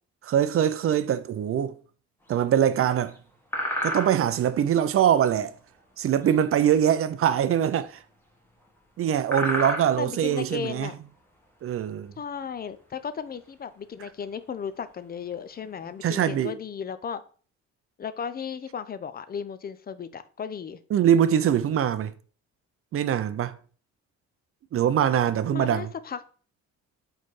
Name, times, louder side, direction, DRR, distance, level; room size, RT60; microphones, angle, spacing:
voice 1, 0.2-1.7 2.3-3.1 3.8-5.5 6.0-8.0 9.0-10.9 11.6-12.1 16.0-16.5 20.9-22.1 22.9-23.5 24.7-25.9, right 9 dB, 50° right, 0.4 m, -23 dB
sound 1, 2.3-2.8 3.1-3.2 3.5-4.5 5.0-6.4 6.7-7.0 7.3-7.5 7.7-7.9 8.6-8.8 9.1-10.5 10.8-11.2 11.7-12.8 13.2-13.5 13.9-14.0 14.3-14.7 15.5-15.6 15.9-16.1, equal, 5° left, 1.1 m, -32 dB
voice 2, 10.0-11.0 12.2-17.2 18.0-20.8 25.5-26.2, left 7 dB, 30° left, 0.4 m, -35 dB
4.3 x 4.0 x 3.1 m
cardioid pair, 90°, 30 cm